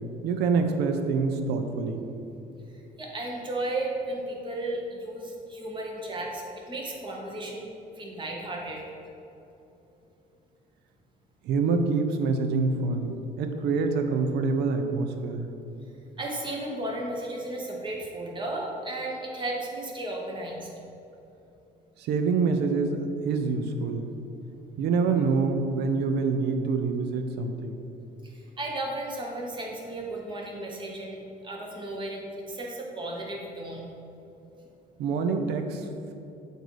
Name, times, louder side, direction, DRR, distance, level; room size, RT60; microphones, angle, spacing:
voice 1, 0.0-2.1 11.4-15.5 22.0-24.1 24.8-27.8 35.0-36.1, right 4 dB, 80° right, 6 dB, 0.6 m, -26 dB
voice 2, 2.7-7.7 7.9-8.8 16.2-20.7 28.2-33.9, right 1 dB, 30° right, -1 dB, 1.2 m, -34 dB
7.8 x 2.7 x 4.7 m, 2.9 s
cardioid pair, 110°, 17 cm